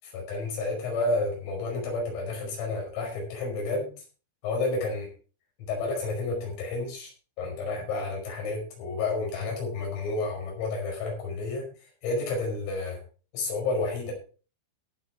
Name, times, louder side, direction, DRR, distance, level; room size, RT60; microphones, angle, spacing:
voice 1, 0.0-3.9 4.4-5.1 5.7-7.1 7.4-11.7 12.0-13.0 13.3-14.1, left 3 dB, 80° left, 0 dB, 7.8 m, -30 dB
18.5 x 6.6 x 4.4 m, 0.37 s
omnidirectional pair, 5.9 m